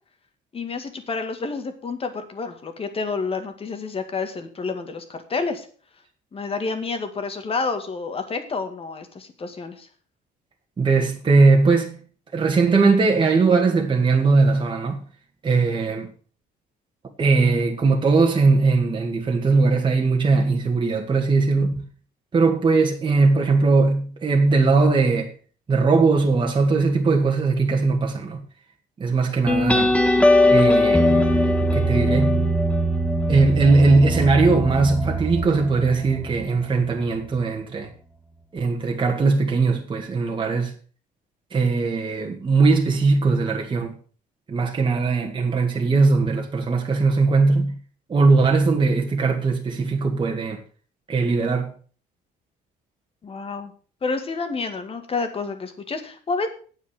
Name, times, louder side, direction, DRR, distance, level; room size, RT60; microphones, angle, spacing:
voice 1, 0.5-5.7 6.3-9.9 53.2-53.7 54.0-56.5, left 4 dB, 35° left, 2.1 m, -29 dB
voice 2, 10.8-12.0 12.3-15.0 15.4-16.1 17.2-21.8 22.3-25.3 25.7-28.4 29.0-29.9 30.5-32.5 33.3-37.9 38.5-40.7 41.5-44.0 44.5-47.8 48.1-50.6 51.1-51.7, right 3 dB, 30° right, 1.9 m, -20 dB
sound 1, 29.5-36.6, left 1 dB, 5° left, 1.2 m, -20 dB
8.8 x 8.1 x 6.6 m
cardioid pair, 110°, 17 cm